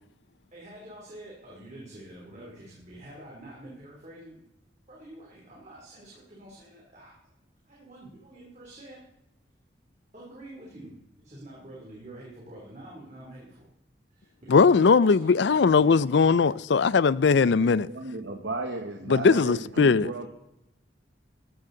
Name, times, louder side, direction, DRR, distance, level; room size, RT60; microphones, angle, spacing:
voice 1, 0.5-4.4 4.9-7.1 7.7-9.0 10.1-13.6 14.1-16.5, right 1 dB, 40° right, 3.0 m, -47 dB
voice 2, 14.5-17.9 19.1-20.1, left 5 dB, 70° left, 0.4 m, -20 dB
voice 3, 17.9-20.3, right 2 dB, 80° right, 1.4 m, -34 dB
14.5 x 13.0 x 3.9 m
head